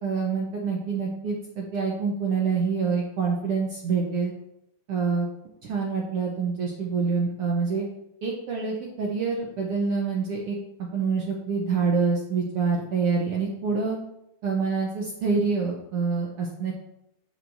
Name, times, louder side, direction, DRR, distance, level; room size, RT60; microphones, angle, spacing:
voice 1, 0.0-4.3 4.9-5.3 5.6-7.9 8.2-14.0 14.4-16.7, right 5 dB, 80° right, -2 dB, 1.3 m, -26 dB
7.3 x 6.3 x 2.6 m, 0.82 s
omnidirectional pair, 3.6 m